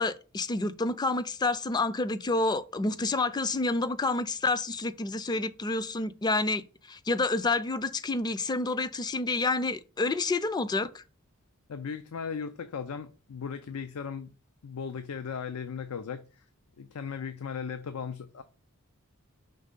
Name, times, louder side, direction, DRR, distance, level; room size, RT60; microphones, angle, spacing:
voice 1, 0.0-11.0, left 3 dB, 20° left, 0.4 m, -29 dB
voice 2, 11.7-14.3 14.6-16.4 16.8-18.4, left 6 dB, 90° left, 0.5 m, -37 dB
5.3 x 3.4 x 5.2 m
head